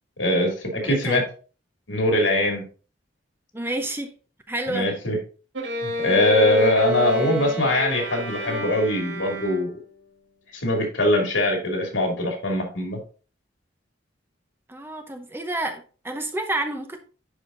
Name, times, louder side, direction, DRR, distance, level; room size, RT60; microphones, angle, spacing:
voice 1, 0.2-1.2 1.9-2.7 4.7-5.2 5.8-9.7 10.5-13.0, left 1 dB, 85° left, 2 dB, 2.6 m, -22 dB
voice 2, 0.8-1.2 3.5-4.1 4.5-4.9 14.7-17.0, right 2 dB, 10° right, 6 dB, 0.7 m, -29 dB
Bowed string instrument, 5.5-10.0, left 1 dB, 80° right, 1.7 m, -29 dB
10.5 x 4.9 x 2.6 m, 0.37 s
head